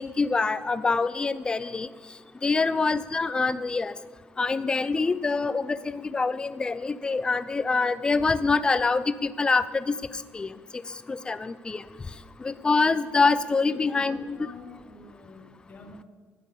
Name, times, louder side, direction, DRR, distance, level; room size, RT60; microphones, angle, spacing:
voice 1, 0.0-1.9 2.4-3.9 4.4-10.0 10.3-10.5 11.1-11.8 12.4-14.4, left 4 dB, 20° left, 14 dB, 0.5 m, -25 dB
voice 2, 13.6-16.0, left 3 dB, 35° left, 1 dB, 1.8 m, -47 dB
11.5 x 7.7 x 6.9 m, 1.4 s
cardioid pair, 120°, 5 cm